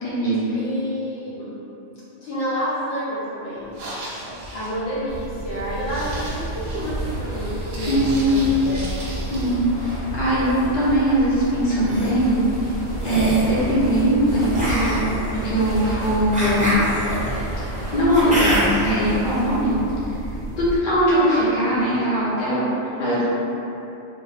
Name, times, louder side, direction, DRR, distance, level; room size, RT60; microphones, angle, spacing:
voice 1, 0.0-0.4 7.9-8.3 9.3-12.4 13.0-16.7 17.9-19.8 20.1-20.2 20.6-23.2, right 1 dB, 50° left, -9 dB, 0.8 m, -20 dB
voice 2, 0.5-1.5 2.2-3.7 4.5-8.9 23.0-23.3, equal, 75° left, -10 dB, 1.0 m, -29 dB
sound 1, 3.6-9.6, right 1 dB, 60° right, 0.7 m, -37 dB
sound 2, 5.1-20.8, right 1 dB, 10° left, 1.0 m, -30 dB
sound 3, 11.6-12.1 13.0-13.5 14.5-18.9, equal, 10° right, 0.4 m, -26 dB
2.6 x 2.1 x 3.2 m, 3.0 s
omnidirectional pair, 1.3 m